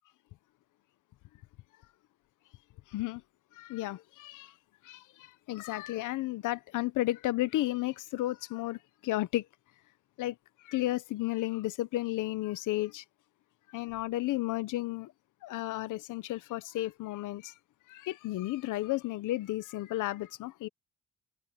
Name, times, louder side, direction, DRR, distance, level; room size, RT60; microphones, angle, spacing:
voice 1, 3.6-4.5 4.8-9.4 10.2-10.4 10.6-13.0 13.7-15.1 15.4-17.5 17.9-20.7, left 16 dB, 85° left, 1.0 m, -33 dB
cardioid pair, 90°, 30 cm